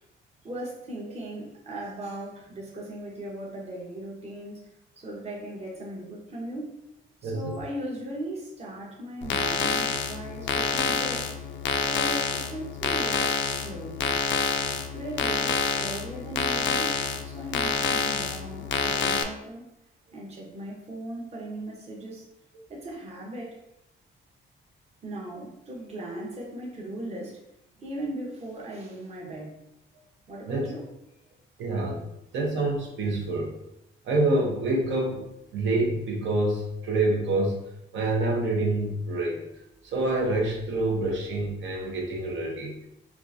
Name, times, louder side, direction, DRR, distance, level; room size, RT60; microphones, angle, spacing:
voice 1, 0.4-4.7 5.0-6.7 7.2-11.3 11.7-14.1 14.9-17.0 17.2-19.7 20.1-22.2 22.7-23.6 25.0-27.4 27.8-29.6 30.3-30.8, right 1 dB, 30° right, -3 dB, 0.9 m, -38 dB
sound 1, 9.2-19.2, left 5 dB, 65° left, 0.4 m, -27 dB
voice 2, 31.6-32.0 32.3-33.5 34.1-35.3 35.5-37.6 37.9-39.4 39.9-42.7, right 2 dB, 65° right, -2 dB, 0.9 m, -26 dB
4.5 x 2.4 x 2.6 m, 0.81 s
cardioid pair, 135°, 20 cm